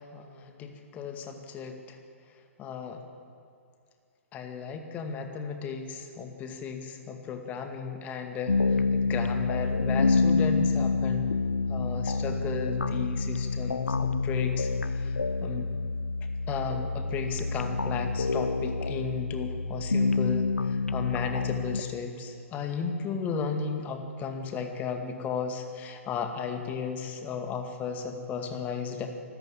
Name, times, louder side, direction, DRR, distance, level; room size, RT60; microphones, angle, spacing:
voice 1, 0.0-2.0 2.6-3.0 4.3-11.3 11.7-15.1 15.4-15.7 16.5-29.1, left 6 dB, 20° left, 5 dB, 2.2 m, -35 dB
sound 1, 8.5-21.8, left 4 dB, 75° left, 0.6 m, -28 dB
25.0 x 14.0 x 8.8 m, 2.4 s
figure-of-eight pair, 120°, 8 cm